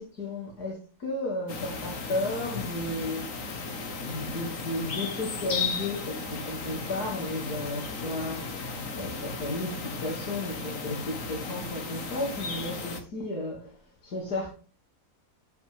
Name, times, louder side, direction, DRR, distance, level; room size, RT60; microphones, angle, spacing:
voice 1, 0.0-3.2 4.0-8.5 9.0-14.5, left 2 dB, 80° left, 3.2 m, -34 dB
sound 1, 1.5-13.0, left 4 dB, 55° left, 1.9 m, -35 dB
14.0 x 5.7 x 3.6 m
omnidirectional pair, 1.6 m